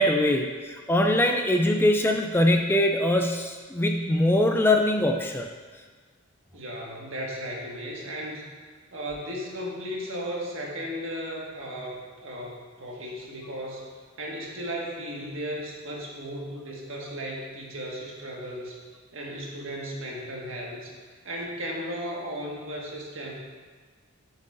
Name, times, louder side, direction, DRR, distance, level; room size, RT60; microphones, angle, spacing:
voice 1, 0.0-5.4, left 1 dB, 10° left, 3 dB, 0.3 m, -22 dB
voice 2, 6.5-8.5 8.9-13.8 14.2-18.8 19.1-23.3, equal, 65° right, -2 dB, 1.7 m, -35 dB
10.5 x 7.5 x 2.6 m, 1.5 s
head